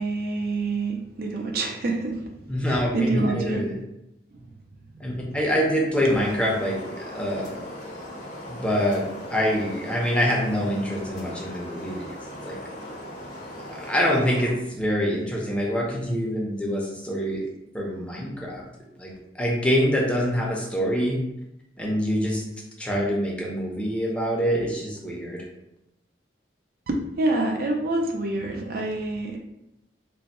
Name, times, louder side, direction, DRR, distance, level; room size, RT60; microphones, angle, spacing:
voice 1, 0.0-2.2 2.6-3.7 5.2-5.5 6.0-6.2 26.9-29.4, right 2 dB, 50° right, 1 dB, 0.5 m, -27 dB
voice 2, 2.5-3.8 5.0-7.6 8.5-12.2 12.4-12.6 13.7-17.4 17.7-18.7 19.0-21.2 21.8-22.4 22.8-25.5, equal, 5° left, -3 dB, 0.6 m, -25 dB
sound 1, 5.9-14.5, left 1 dB, 40° left, 0.8 m, -39 dB
3.3 x 2.1 x 4.1 m, 0.87 s
head